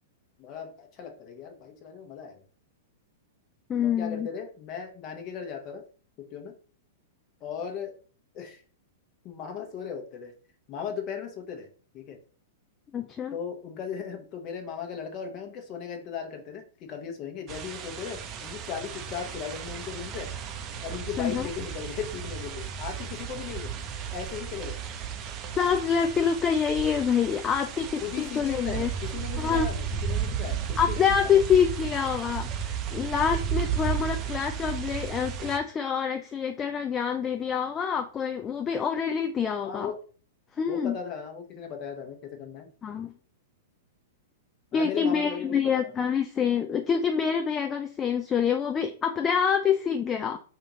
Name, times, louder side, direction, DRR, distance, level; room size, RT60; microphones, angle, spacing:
voice 1, 0.4-2.4 3.8-5.8 6.2-6.5 7.4-7.9 8.3-8.6 9.2-10.3 10.7-11.7 11.9-12.2 13.3-16.6 16.9-20.3 20.8-23.7 24.1-24.8 28.0-31.3 39.6-40.0 40.7-42.7 44.7-45.9, left 7 dB, 40° left, 4 dB, 0.9 m, -37 dB
voice 2, 3.7-4.3 12.9-13.3 21.2-21.5 25.3-28.9 29.4-29.7 30.8-39.9 40.6-41.0 42.8-43.1 44.7-50.4, left 7 dB, 25° left, 5 dB, 0.3 m, -26 dB
sound 1, 17.5-35.6, right 8 dB, 35° right, 0.5 m, -34 dB
2.8 x 2.4 x 3.9 m, 0.41 s
hypercardioid pair, 105°, 0 cm